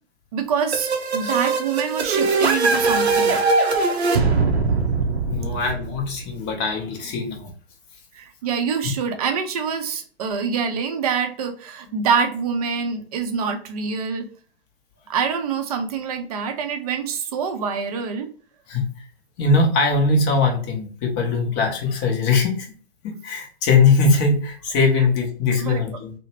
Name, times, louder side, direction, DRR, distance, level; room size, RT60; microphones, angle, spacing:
voice 1, 0.3-3.4 8.1-14.3 15.1-18.3 25.0-25.1 25.5-25.8, right 6 dB, 35° right, 6 dB, 0.5 m, -25 dB
sound 1, 0.7-6.4, right 3 dB, 85° right, 0.6 m, -21 dB
voice 2, 5.3-7.5 18.7-18.9 19.4-22.7 23.0-26.1, left 4 dB, 20° left, 2 dB, 0.6 m, -21 dB
2.8 x 2.1 x 2.8 m, 0.43 s
figure-of-eight pair, 130°, 32 cm